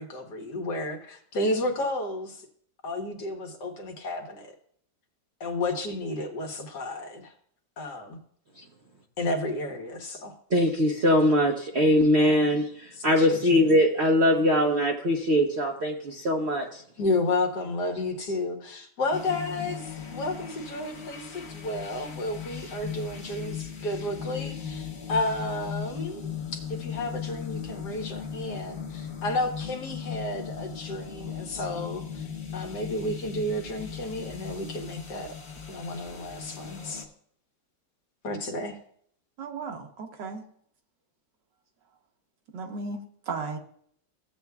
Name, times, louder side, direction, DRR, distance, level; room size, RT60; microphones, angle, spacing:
voice 1, 0.0-2.4 2.8-4.5 5.4-7.3 7.8-8.2 9.2-10.3 12.9-13.7 17.0-35.4 35.7-37.1 38.2-38.8, left 2 dB, 60° left, 3 dB, 1.7 m, -32 dB
voice 2, 10.5-16.8, left 1 dB, 50° right, 0 dB, 0.8 m, -22 dB
sound 1, 19.1-37.1, left 7 dB, 40° left, 1.2 m, -38 dB
voice 3, 39.4-40.4 42.5-43.6, right 4 dB, 70° right, 4 dB, 1.6 m, -35 dB
15.0 x 8.0 x 2.3 m, 0.63 s
omnidirectional pair, 2.1 m